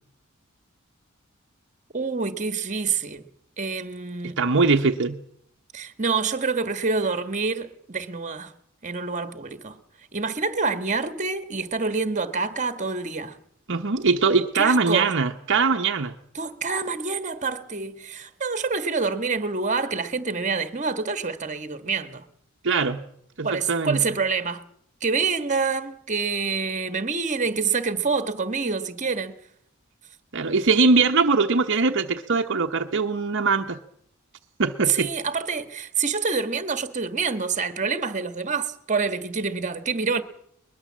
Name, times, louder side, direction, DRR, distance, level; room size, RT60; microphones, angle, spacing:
voice 1, 1.9-3.2 3.6-4.4 5.7-8.5 8.8-9.8 10.1-13.4 14.6-15.1 16.3-22.2 23.4-24.6 25.0-29.4 34.9-40.2, right 4 dB, 35° right, 1.6 m, -27 dB
voice 2, 4.2-5.2 13.7-16.1 22.6-23.0 23.4-24.0 30.3-33.8 34.6-35.1, right 4 dB, 60° right, 1.1 m, -21 dB
22.0 x 21.0 x 7.5 m
head